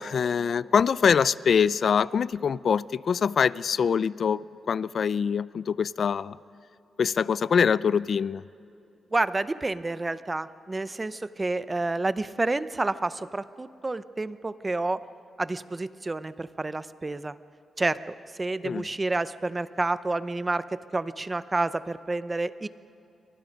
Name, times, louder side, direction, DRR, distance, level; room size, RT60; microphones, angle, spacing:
voice 1, 0.0-6.4 7.0-8.4 18.6-18.9, left 6 dB, 50° left, 19 dB, 0.4 m, -24 dB
voice 2, 9.1-15.0 15.4-17.4 17.8-22.7, right 2 dB, 20° right, 14 dB, 0.6 m, -29 dB
29.0 x 24.5 x 5.3 m, 2.9 s
wide cardioid pair, 150°, 0 cm